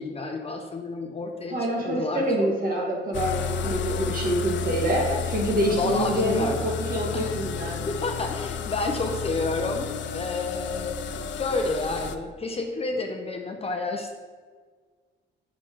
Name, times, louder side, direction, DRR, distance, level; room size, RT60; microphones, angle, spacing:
voice 1, 0.0-2.5 5.7-6.6 7.1-7.3 7.9-14.1, left 3 dB, 30° left, 3 dB, 0.7 m, -30 dB
voice 2, 1.5-7.9, right 1 dB, 45° right, -2 dB, 1.8 m, -26 dB
sound 1, 3.1-12.2, left 6 dB, 70° left, 0.5 m, -32 dB
5.8 x 4.3 x 4.5 m, 1.5 s
cardioid pair, 90°, 20 cm